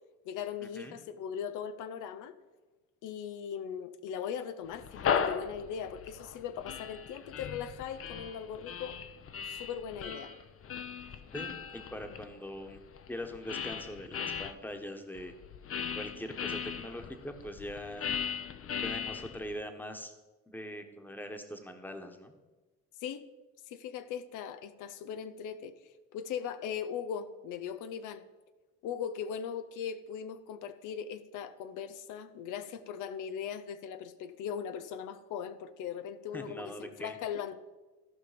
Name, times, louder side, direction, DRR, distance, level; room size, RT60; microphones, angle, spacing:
voice 1, 0.3-2.3 3.0-9.0 9.4-10.3 23.0-23.3 23.7-25.7 26.1-28.2 28.8-37.7, left 8 dB, 90° left, 12 dB, 0.6 m, -39 dB
sound 1, 4.7-14.5 15.2-19.6, left 7 dB, 50° left, 0.7 m, -38 dB
voice 2, 11.3-12.8 13.1-15.3 15.9-18.1 18.8-20.1 20.5-22.3 36.3-37.2, equal, 5° left, 6 dB, 1.2 m, -42 dB
14.0 x 5.2 x 5.1 m, 1.2 s
cardioid pair, 90°, 30 cm